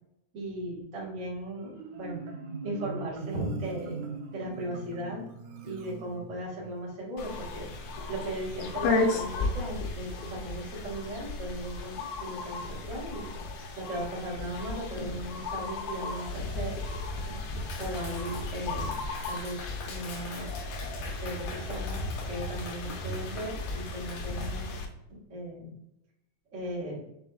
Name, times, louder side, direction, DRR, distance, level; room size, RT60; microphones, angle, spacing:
voice 1, 0.3-2.2 2.6-4.0 4.3-5.3 5.6-7.7 8.1-13.3 13.7-16.7 17.2-17.3 17.8-18.9 19.3-20.5 21.2-24.7 25.1-25.7 26.5-27.0, right 1 dB, 40° right, -6 dB, 1.1 m, -37 dB
Marimba xylophone, 1.6-6.7, right 4 dB, 85° right, 1.5 m, -41 dB
sound 1, 7.2-24.9, left 3 dB, 85° left, 2.4 m, -34 dB
Clapping, 17.7-24.5, left 3 dB, 70° left, 1.9 m, -45 dB
6.0 x 3.4 x 2.4 m, 0.83 s
omnidirectional pair, 4.0 m